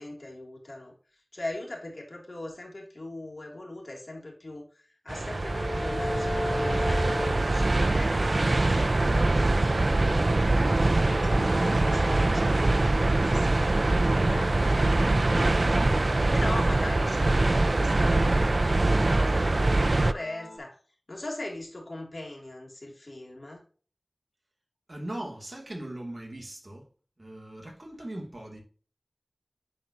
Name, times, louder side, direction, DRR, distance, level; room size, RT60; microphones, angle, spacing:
voice 1, 0.0-10.2 10.6-20.8 21.1-23.6, left 1 dB, 70° left, 2.9 m, -41 dB
sound 1, 5.1-20.6, left 1 dB, 85° left, 2.0 m, -38 dB
sound 2, 5.1-20.1, right 2 dB, 60° right, 0.3 m, -23 dB
voice 2, 24.9-26.9 27.2-28.6, right 1 dB, 45° right, 2.6 m, -39 dB
10.0 x 4.3 x 2.9 m
wide cardioid pair, 55°, 0 cm